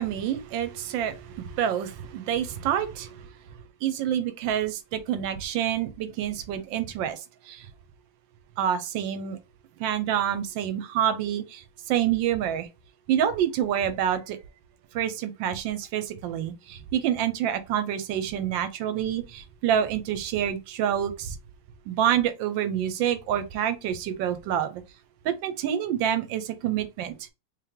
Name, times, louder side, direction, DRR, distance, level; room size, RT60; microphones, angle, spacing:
voice 1, 0.0-3.3 3.8-7.7 8.6-9.4 9.8-12.7 13.1-14.4 14.9-21.4 21.9-24.8 25.2-27.3, right 10 dB, 75° right, 1.2 m, -27 dB
3.3 x 3.0 x 3.5 m
omnidirectional pair, 2.2 m